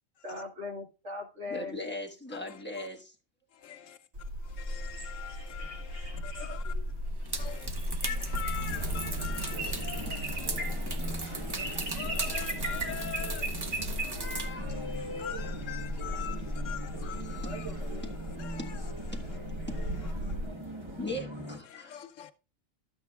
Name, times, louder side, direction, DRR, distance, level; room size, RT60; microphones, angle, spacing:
voice 1, 0.2-1.8 6.6-6.9, left 3 dB, 60° right, 1.9 m, -40 dB
voice 2, 1.5-3.1 10.9-11.0 11.5-11.6 18.0-18.1 18.6-18.7 19.1-19.2 19.7-19.8 21.0-21.9, left 1 dB, 10° left, 1.2 m, -39 dB
voice 3, 2.3-2.9 3.5-4.0 4.4-6.8 7.3-19.4 20.0-20.1 21.6-22.3, left 10 dB, 75° left, 1.0 m, -44 dB
sound 1, 4.1-20.5, equal, 80° right, 2.5 m, -36 dB
sound 2, 5.4-5.8 6.0-6.2 6.9-14.6 14.8-18.3 18.7-18.9 19.2-21.1, right 3 dB, 40° right, 0.3 m, -40 dB
sound 3, 8.7-21.6, right 1 dB, 25° right, 1.1 m, -41 dB
12.0 x 8.8 x 2.3 m
omnidirectional pair, 1.4 m